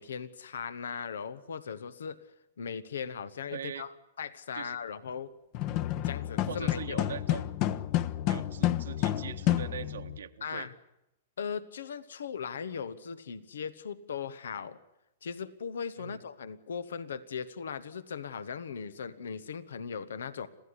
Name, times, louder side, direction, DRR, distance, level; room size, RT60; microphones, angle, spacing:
voice 1, 0.0-2.2 2.6-5.3 6.0-7.1 10.4-10.7 11.4-14.8 15.2-20.5, left 6 dB, 85° left, 15 dB, 1.3 m, -38 dB
voice 2, 3.5-3.8 4.5-4.8 6.5-7.6 8.3-10.7 16.0-16.2, right 8 dB, 85° right, 6 dB, 1.6 m, -41 dB
sound 1, 5.5-10.2, left 13 dB, 40° left, 1.0 m, -30 dB
27.0 x 15.5 x 9.9 m, 0.86 s
hypercardioid pair, 140°, 0 cm